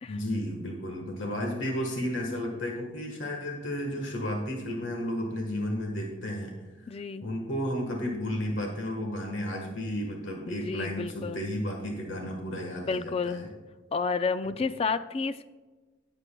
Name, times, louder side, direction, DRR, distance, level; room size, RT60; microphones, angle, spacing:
voice 1, 0.1-13.5 14.4-14.5, equal, 75° left, 1 dB, 1.4 m, -33 dB
voice 2, 6.9-7.2 10.5-11.4 12.8-13.5 13.9-15.5, left 4 dB, 30° left, 13 dB, 0.3 m, -31 dB
18.5 x 7.9 x 2.3 m, 1.3 s
head